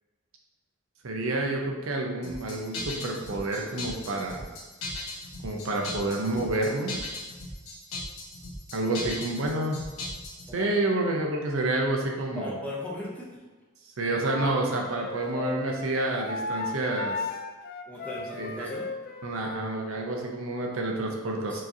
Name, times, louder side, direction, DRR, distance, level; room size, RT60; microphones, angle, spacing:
voice 1, 1.0-4.5 5.4-6.9 8.7-9.8 10.5-12.6 14.0-17.3 18.4-18.7 19.2-21.6, right 2 dB, 65° right, 1 dB, 0.6 m, -29 dB
sound 1, 2.2-10.5, left 2 dB, 80° left, 1.1 m, -37 dB
voice 2, 12.3-13.3 17.9-18.9 21.5-21.6, left 1 dB, 5° left, -5 dB, 0.7 m, -37 dB
Wind instrument woodwind instrument, 14.3-19.7, left 3 dB, 45° left, 0.3 m, -36 dB
4.7 x 3.0 x 2.6 m, 1.2 s
head